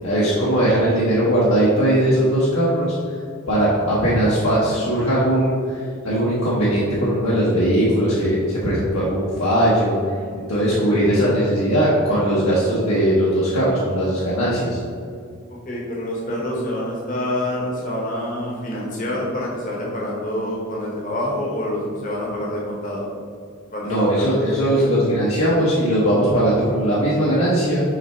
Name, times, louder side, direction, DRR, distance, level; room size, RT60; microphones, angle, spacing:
voice 1, 0.0-3.0 3.5-10.0 10.5-14.8 23.8-27.8, right 1 dB, 75° left, -8 dB, 1.2 m, -19 dB
voice 2, 15.5-23.1 23.7-24.9, left 1 dB, 40° left, -4 dB, 1.1 m, -27 dB
6.4 x 3.3 x 4.4 m, 2.3 s
head